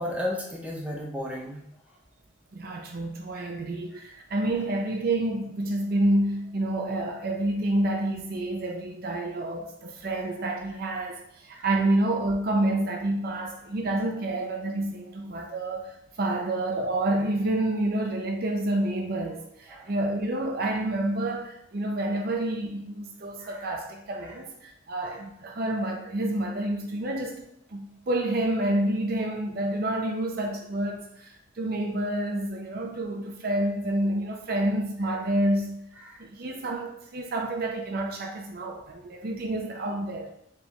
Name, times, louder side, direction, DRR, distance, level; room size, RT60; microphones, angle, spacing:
voice 1, 0.0-1.6 3.9-4.1 11.5-11.7 19.7-19.9 23.4-23.6 25.0-25.2 36.0-36.2, left 1 dB, 5° right, 0.6 m, -34 dB
voice 2, 2.5-15.9 16.2-27.4 27.7-35.7 36.2-40.3, right 1 dB, 50° right, 0.5 m, -28 dB
4.4 x 3.3 x 2.8 m
head